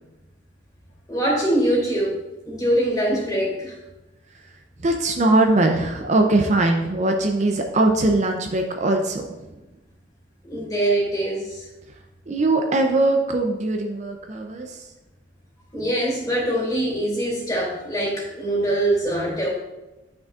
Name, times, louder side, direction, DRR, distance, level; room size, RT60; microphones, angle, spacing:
voice 1, 1.1-2.2 2.4-3.7 10.5-11.6 15.7-19.5, right 1 dB, 20° left, -3 dB, 2.4 m, -23 dB
voice 2, 4.8-9.3 12.3-14.8, right 2 dB, 40° right, 3 dB, 0.5 m, -21 dB
9.8 x 6.1 x 2.5 m, 1.0 s
head